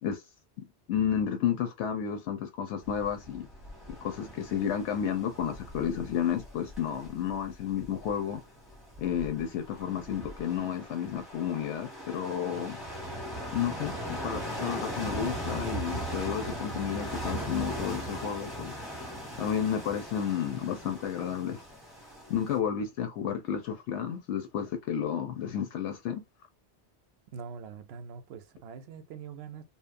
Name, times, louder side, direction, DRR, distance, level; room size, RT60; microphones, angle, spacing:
voice 1, 0.9-3.5 4.0-8.4 9.0-12.8 13.5-18.8 19.4-21.6 22.3-26.2, left 8 dB, 80° left, 0.9 m, -32 dB
sound 1, 2.8-22.6, equal, ahead, 0.8 m, -39 dB
voice 2, 27.3-29.6, right 6 dB, 70° right, 0.7 m, -43 dB
2.7 x 2.0 x 2.4 m
omnidirectional pair, 1.2 m